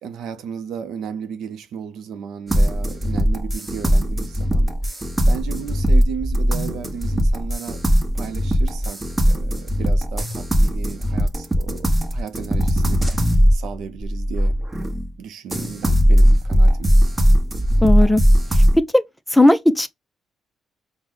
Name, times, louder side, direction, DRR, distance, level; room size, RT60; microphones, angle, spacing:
voice 1, 0.0-7.8 8.1-11.9 12.1-14.6 15.2-16.9, right 7 dB, 80° right, 0.5 m, -34 dB
sound 1, 2.5-15.1 15.5-18.8, equal, 20° right, 1.1 m, -18 dB
voice 2, 17.8-18.2 18.9-19.0 19.3-19.9, left 1 dB, 5° left, 0.5 m, -15 dB
4.8 x 2.1 x 3.7 m
cardioid pair, 90°, 0 cm